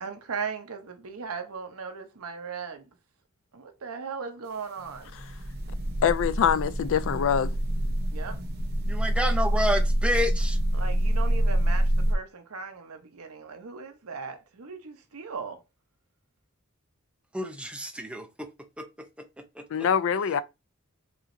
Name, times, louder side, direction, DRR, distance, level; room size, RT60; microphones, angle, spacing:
voice 1, 0.0-2.9 3.5-5.2 8.1-8.4 10.7-15.6, right 5 dB, 80° right, 0.8 m, -38 dB
sound 1, 4.8-12.1, right 1 dB, 50° right, 0.7 m, -26 dB
voice 2, 6.0-7.5 19.7-20.4, left 7 dB, 65° left, 0.4 m, -24 dB
voice 3, 8.8-10.6 17.3-18.5 18.8-18.9 19.6-19.9, equal, 5° right, 0.6 m, -29 dB
4.8 x 2.9 x 2.6 m
head